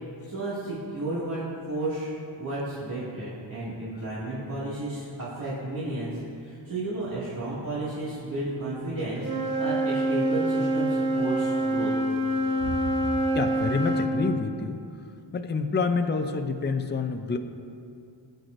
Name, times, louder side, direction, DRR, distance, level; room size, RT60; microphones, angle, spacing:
voice 1, 0.2-2.1 2.4-11.9, right 2 dB, 45° right, -11 dB, 2.3 m, -32 dB
Wind instrument woodwind instrument, 9.2-14.1, right 1 dB, 25° right, 1.4 m, -26 dB
voice 2, 13.3-14.8 15.3-17.4, left 4 dB, 25° left, 6 dB, 0.5 m, -27 dB
20.5 x 7.8 x 2.6 m, 2.4 s
wide cardioid pair, 175°, 46 cm